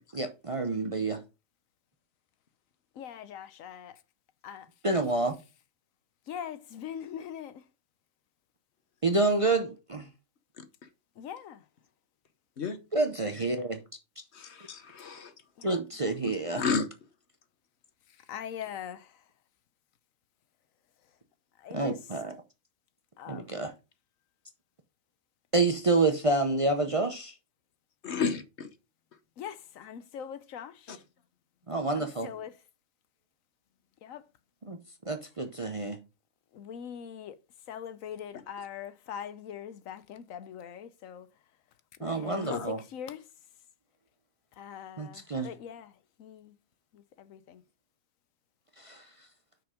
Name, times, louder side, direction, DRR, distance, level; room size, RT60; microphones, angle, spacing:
voice 1, 0.1-1.2 4.8-5.3 9.0-10.1 12.9-13.8 15.6-16.6 21.7-22.3 23.3-23.7 25.5-27.4 31.7-32.3 34.7-34.8 35.1-36.0 42.0-42.8 45.0-45.5 48.8-49.1, right 2 dB, 30° right, 0.6 m, -28 dB
voice 2, 2.9-4.0 4.4-4.7 6.3-7.7 11.2-11.7 15.6-15.8 18.1-19.2 21.6-22.0 23.2-23.5 29.4-31.0 32.0-32.5 34.0-34.2 36.5-37.4 37.7-41.3 42.0-42.4 42.7-43.3 44.6-46.5 46.9-47.6, left 8 dB, 80° left, 1.1 m, -42 dB
voice 3, 14.3-15.3 16.6-16.9 28.0-28.7 30.9-31.0 42.3-42.7, left 5 dB, 55° left, 1.2 m, -31 dB
6.1 x 5.1 x 4.9 m
omnidirectional pair, 1.4 m